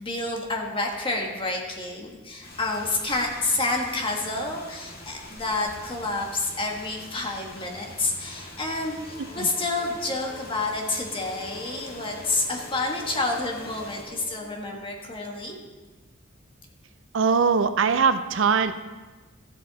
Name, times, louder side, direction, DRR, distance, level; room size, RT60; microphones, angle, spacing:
voice 1, 0.0-15.6, left 2 dB, 25° left, 0 dB, 1.5 m, -29 dB
sound 1, 2.4-14.0, left 1 dB, 50° left, 1.8 m, -44 dB
sound 2, 9.0-14.6, equal, 70° left, 1.9 m, -45 dB
voice 2, 17.1-18.7, right 5 dB, 65° right, 11 dB, 0.5 m, -21 dB
14.0 x 7.7 x 4.1 m, 1.3 s
head